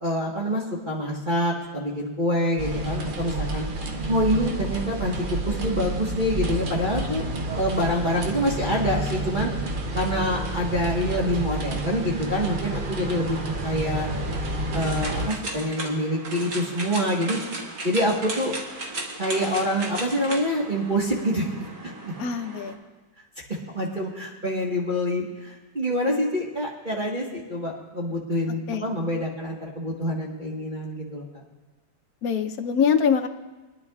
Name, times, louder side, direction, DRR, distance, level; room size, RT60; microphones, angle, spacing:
voice 1, 0.0-3.7 4.1-7.2 7.5-9.5 9.9-14.1 14.7-17.4 17.8-18.6 19.2-21.9 23.7-31.4, equal, 25° right, -5 dB, 1.4 m, -26 dB
sound 1, 2.6-15.3, right 2 dB, 80° right, 0.4 m, -30 dB
sound 2, 14.0-22.7, right 2 dB, 60° right, 2.1 m, -36 dB
voice 2, 22.2-22.8 28.7-28.8 32.2-33.3, left 7 dB, 60° left, 5 dB, 1.0 m, -23 dB
23.5 x 10.5 x 2.4 m, 1.2 s
omnidirectional pair, 2.1 m